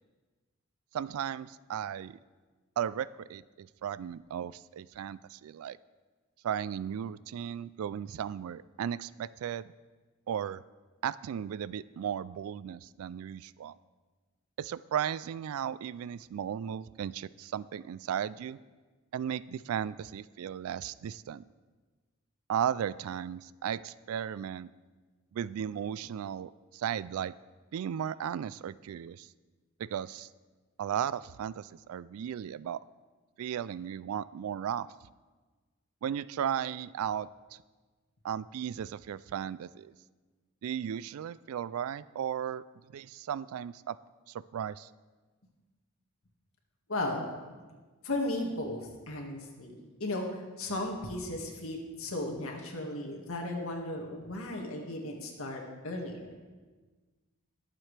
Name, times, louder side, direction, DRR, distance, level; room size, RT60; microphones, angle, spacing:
voice 1, 0.9-2.2 2.8-5.8 6.4-9.7 10.3-10.6 11.0-13.7 14.6-18.6 19.1-21.4 22.5-24.7 25.3-27.3 27.7-29.3 29.8-30.3 30.8-32.8 33.4-34.9 36.0-37.6 38.2-39.9 40.6-42.6 42.9-44.0 44.3-44.9, right 9 dB, 75° right, 19 dB, 0.3 m, -35 dB
voice 2, 46.9-47.3 48.0-56.3, left 1 dB, 75° left, 0 dB, 1.8 m, -35 dB
21.5 x 7.5 x 3.3 m, 1.3 s
head